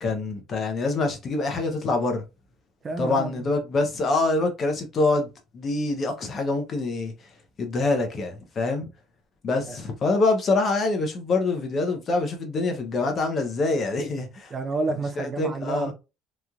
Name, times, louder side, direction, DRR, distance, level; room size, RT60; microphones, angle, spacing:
voice 1, 0.0-2.2 3.0-5.3 5.5-7.1 7.6-8.9 9.4-14.5 15.2-15.9, left 3 dB, 40° left, 0.8 m, -25 dB
voice 2, 2.8-3.5 9.7-9.8 14.5-15.9, right 3 dB, 30° right, 0.4 m, -30 dB
3.1 x 2.5 x 2.3 m
cardioid pair, 130°, 0 cm